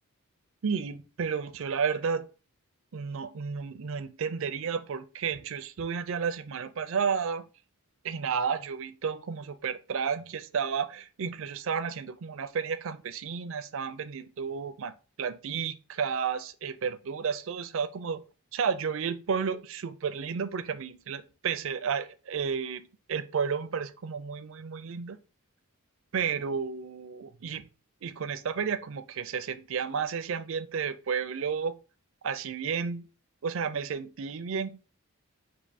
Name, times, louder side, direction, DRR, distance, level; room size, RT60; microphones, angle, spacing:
voice 1, 0.6-2.2 2.9-7.4 8.0-14.9 15.2-18.2 18.5-25.2 26.1-27.7 28.0-31.8 32.2-33.0 33.4-34.8, right 6 dB, 60° right, 0.4 m, -32 dB
4.5 x 2.7 x 4.0 m
head